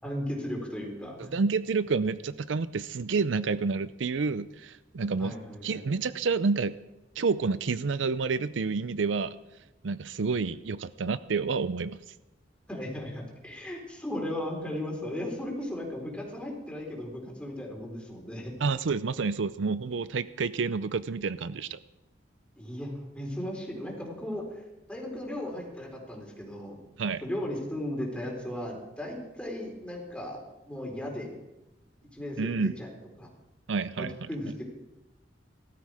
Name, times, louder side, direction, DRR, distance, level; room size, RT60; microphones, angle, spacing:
voice 1, 0.0-1.3 5.2-5.8 12.7-18.5 22.6-24.6 24.9-26.8 27.2-30.4 30.7-31.3 32.1-32.9 33.2-33.3 34.0-34.6, left 1 dB, 5° left, -1 dB, 4.0 m, -36 dB
voice 2, 1.2-5.4 5.6-6.8 7.2-9.4 9.8-12.0 18.6-21.8 27.0-27.2 32.4-32.8 33.7-34.3, right 4 dB, 80° right, 16 dB, 0.5 m, -29 dB
19.0 x 13.0 x 4.9 m, 0.98 s
head